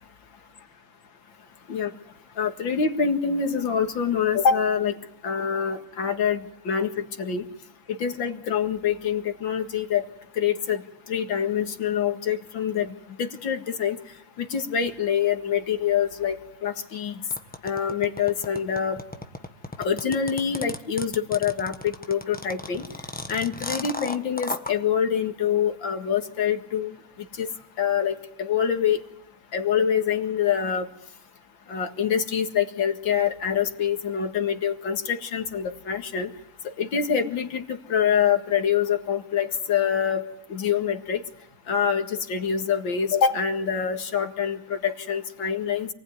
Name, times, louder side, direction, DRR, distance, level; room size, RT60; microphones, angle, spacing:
voice 1, 2.4-5.0 5.2-6.4 6.7-7.4 8.0-10.0 10.4-10.8 11.1-12.9 13.2-14.0 14.4-16.4 16.6-17.1 17.6-19.0 19.8-22.8 23.3-27.0 27.4-27.5 27.8-29.0 29.5-30.9 31.7-36.3 36.8-40.2 40.5-41.2 41.7-45.9, left 7 dB, 80° left, 5 dB, 2.6 m, -25 dB
sound 1, 17.3-24.7, left 1 dB, 5° left, 1.0 m, -34 dB
28.0 x 19.0 x 9.6 m, 0.81 s
omnidirectional pair, 2.1 m